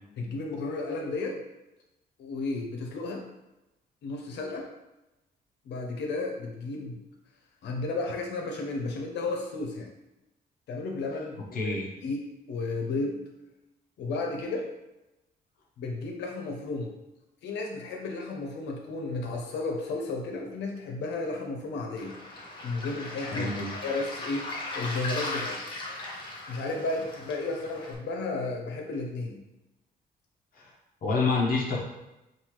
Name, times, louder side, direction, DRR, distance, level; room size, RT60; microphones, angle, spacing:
voice 1, 0.2-1.4 2.2-3.2 4.0-4.7 5.6-7.0 7.6-9.9 10.7-11.4 11.6-11.7 12.0-13.3 14.0-14.6 15.8-16.9 17.4-22.2 22.6-25.7 26.5-29.4, left 3 dB, 90° left, 1 dB, 0.9 m, -33 dB
voice 2, 11.5-11.9 23.3-23.7 30.5-30.7 31.0-31.8, left 3 dB, 55° left, -3 dB, 0.9 m, -27 dB
Waves surf, 22.0-27.9, left 2 dB, 30° left, 0.9 m, -38 dB
5.6 x 2.6 x 3.1 m, 0.96 s
cardioid pair, 145°, 18 cm